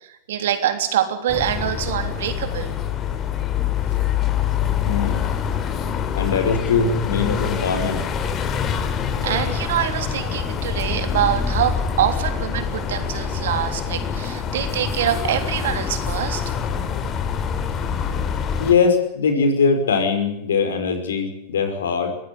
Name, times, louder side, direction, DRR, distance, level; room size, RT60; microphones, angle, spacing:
voice 1, 0.3-2.7 9.2-16.5, right 10 dB, 75° right, 8 dB, 3.4 m, -24 dB
sound 1, 1.3-18.7, left 7 dB, 35° left, 3.4 m, -25 dB
voice 2, 4.8-5.2 6.1-8.0 18.6-22.1, left 5 dB, 80° left, 7 dB, 5.4 m, -21 dB
23.5 x 15.5 x 9.7 m, 0.78 s
hypercardioid pair, 100°, 0 cm